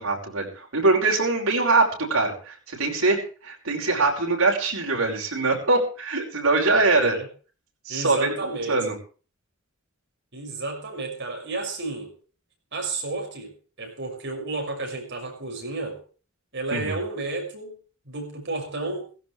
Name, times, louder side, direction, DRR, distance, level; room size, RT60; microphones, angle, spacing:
voice 1, 0.0-7.2 7.9-8.9 16.7-17.0, right 3 dB, 85° right, 0 dB, 5.3 m, -23 dB
voice 2, 6.7-7.3 7.9-8.8 10.3-12.1 12.7-13.5 13.8-16.0 16.5-17.8 18.0-19.1, right 3 dB, 60° right, 1 dB, 6.1 m, -32 dB
17.0 x 16.0 x 3.3 m, 0.38 s
head